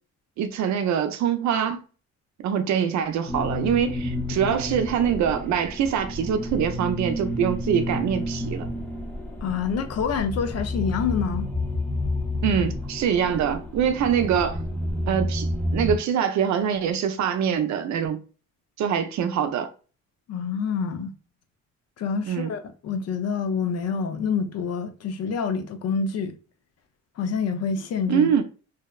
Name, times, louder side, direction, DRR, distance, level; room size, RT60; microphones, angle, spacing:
voice 1, 0.4-1.8 2.4-8.7 12.4-14.6 15.1-18.2 18.8-19.7 22.3-22.5 28.1-28.4, right 8 dB, 70° right, 0.5 m, -24 dB
sound 1, 3.3-16.0, left 1 dB, 5° left, 0.6 m, -30 dB
voice 2, 9.4-11.5 20.3-21.1 22.0-26.3 27.2-28.3, left 6 dB, 55° left, 0.5 m, -27 dB
2.7 x 2.0 x 2.2 m
cardioid pair, 90°, 30 cm